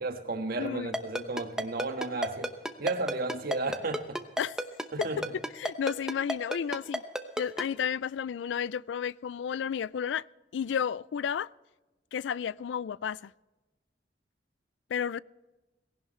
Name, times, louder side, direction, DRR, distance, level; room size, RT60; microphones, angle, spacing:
voice 1, 0.0-2.5 2.8-4.2 4.9-5.2, right 3 dB, 55° right, 1.5 m, -33 dB
voice 2, 0.6-0.9 4.4-4.6 5.6-7.0 7.4-10.2 10.5-11.5 12.1-13.3 14.9-15.2, left 8 dB, 90° left, 0.3 m, -32 dB
Ringtone, 0.9-7.6, equal, 5° right, 0.8 m, -31 dB
18.5 x 17.0 x 3.2 m
head